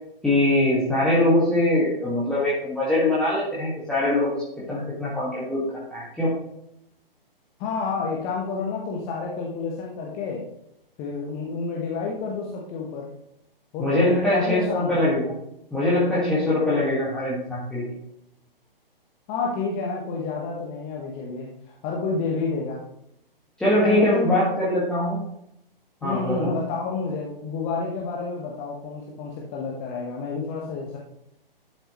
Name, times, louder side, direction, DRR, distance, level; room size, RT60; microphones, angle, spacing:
voice 1, 0.2-4.4 4.7-5.6 5.9-6.3 13.8-15.3 15.7-17.9 23.6-25.2 26.0-26.6, left 1 dB, 5° left, -9 dB, 1.7 m, -22 dB
voice 2, 7.6-10.4 11.0-13.1 13.7-15.0 19.3-22.8 23.8-24.6 26.0-31.0, left 4 dB, 20° left, -2 dB, 1.1 m, -29 dB
11.5 x 6.7 x 3.0 m, 0.77 s
figure-of-eight pair, 130°, 29 cm